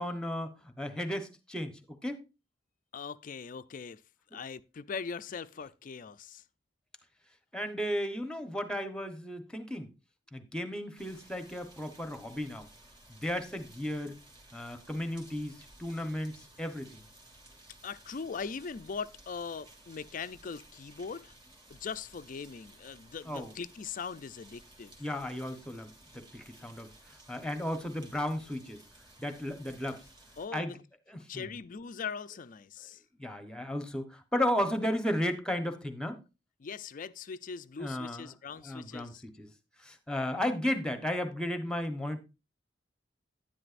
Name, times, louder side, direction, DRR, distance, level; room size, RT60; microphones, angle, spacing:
voice 1, 0.0-2.2 7.5-9.9 10.3-12.7 13.1-14.2 14.5-17.0 23.2-23.5 25.0-26.9 27.3-28.8 29.2-30.0 30.5-30.7 31.1-31.5 33.2-36.2 37.8-38.3 38.6-39.5 39.8-42.2, left 1 dB, 5° left, 1.0 m, -34 dB
voice 2, 2.9-4.0 4.3-6.4 17.8-21.3 21.7-25.0 30.4-30.8 31.3-33.0 36.6-39.2, left 5 dB, 45° left, 0.4 m, -40 dB
sound 1, 11.0-30.5, right 1 dB, 25° right, 2.2 m, -57 dB
11.0 x 10.5 x 2.5 m
head